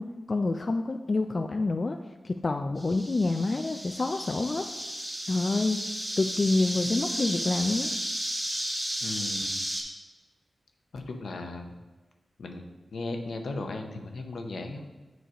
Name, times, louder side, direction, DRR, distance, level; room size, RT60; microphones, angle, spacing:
voice 1, 0.0-2.0 2.2-4.6 5.3-5.8 6.2-7.9, left 3 dB, 50° left, 6 dB, 0.3 m, -27 dB
sound 1, 2.8-9.8, right 1 dB, 15° right, 2.2 m, -33 dB
voice 2, 9.0-9.6 10.9-11.8 12.4-12.6 12.9-14.8, left 2 dB, 80° left, 4 dB, 0.7 m, -36 dB
7.8 x 3.3 x 5.0 m, 1.2 s
cardioid pair, 45°, 0 cm